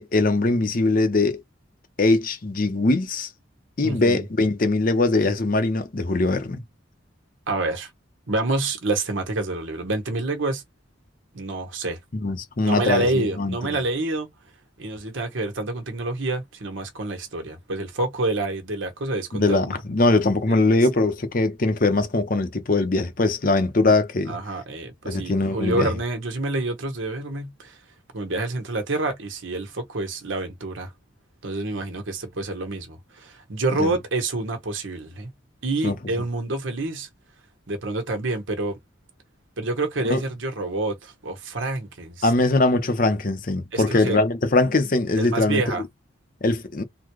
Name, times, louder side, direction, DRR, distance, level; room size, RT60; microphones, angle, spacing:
voice 1, 0.0-1.4 2.0-3.3 3.8-6.6 12.1-13.6 19.3-24.4 25.1-25.9 33.7-33.9 35.8-35.9 40.1-40.2 42.2-45.8 46.4-46.8, left 2 dB, 45° left, 0.8 m, -21 dB
voice 2, 3.8-4.3 7.5-7.9 8.3-10.6 11.3-12.0 12.6-14.3 14.8-19.7 20.5-20.8 23.9-24.0 24.3-27.8 28.1-30.9 31.4-35.3 35.6-37.1 37.7-38.8 39.6-42.3 43.7-44.2 45.2-45.8, right 2 dB, 85° right, 1.2 m, -28 dB
3.9 x 2.3 x 3.1 m
head